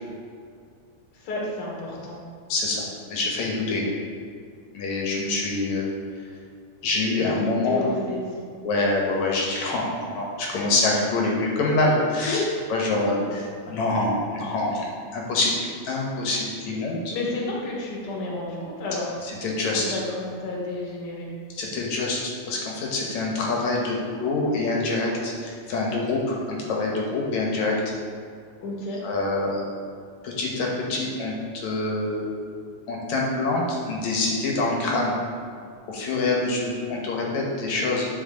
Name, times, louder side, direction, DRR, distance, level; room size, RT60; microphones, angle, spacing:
voice 1, 1.1-2.2 7.6-8.4 10.4-10.7 12.2-12.5 12.9-13.2 17.1-19.1 19.7-21.3 28.6-29.0, left 2 dB, 55° left, -3 dB, 2.2 m, -31 dB
voice 2, 2.5-2.8 3.1-3.9 4.7-5.9 6.8-7.9 8.6-12.4 12.7-15.5 15.8-17.1 19.2-20.0 21.6-27.7 29.0-29.7 30.2-32.3 32.9-35.2 35.9-38.1, left 2 dB, 70° left, -2 dB, 2.4 m, -25 dB
9.9 x 5.0 x 3.8 m, 2.3 s
omnidirectional pair, 3.5 m